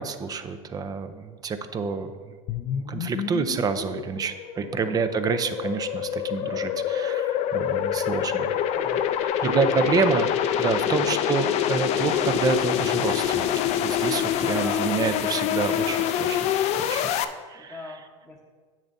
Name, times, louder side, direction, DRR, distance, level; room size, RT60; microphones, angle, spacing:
voice 1, 0.0-2.4 2.7-8.5 9.2-10.3 10.6-16.4 16.8-17.1 17.5-18.0, right 5 dB, 20° right, 10 dB, 0.5 m, -28 dB
sound 1, 2.5-17.2, left 10 dB, 40° left, 0.5 m, -26 dB
voice 2, 4.5-4.9 8.5-9.1 9.4-10.1 14.4-15.0 15.7-16.1 17.5-18.4, left 1 dB, ahead, -6 dB, 1.0 m, -39 dB
10.5 x 8.0 x 2.7 m, 1.5 s
supercardioid pair, 125°, 17 cm